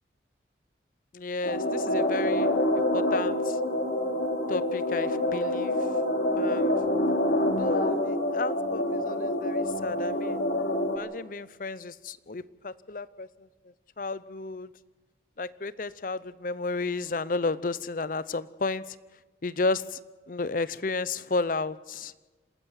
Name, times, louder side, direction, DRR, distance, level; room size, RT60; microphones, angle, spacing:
voice 1, 1.1-3.5 4.5-5.9 6.4-6.7 7.6-10.4 10.9-13.5 14.0-14.7 15.4-19.0 19.4-20.0 20.3-22.1, left 3 dB, 50° left, 17 dB, 0.6 m, -32 dB
sound 1, 1.4-11.0, left 1 dB, 70° left, 2.6 m, -26 dB
27.5 x 13.5 x 7.5 m, 1.2 s
head